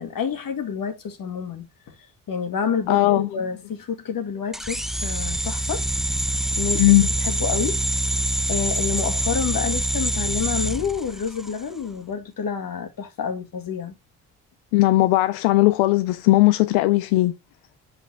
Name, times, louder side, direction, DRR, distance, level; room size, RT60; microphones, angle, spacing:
voice 1, 0.0-1.9 2.3-5.8 6.6-6.9 7.2-7.8 8.5-14.0, left 6 dB, 60° left, 2.0 m, -28 dB
voice 2, 2.9-3.3 6.7-7.1 14.7-17.4, left 18 dB, 90° left, 0.5 m, -18 dB
sound 1, 4.5-11.6, right 1 dB, ahead, 0.5 m, -25 dB
5.8 x 5.1 x 3.4 m
supercardioid pair, 55°, 39 cm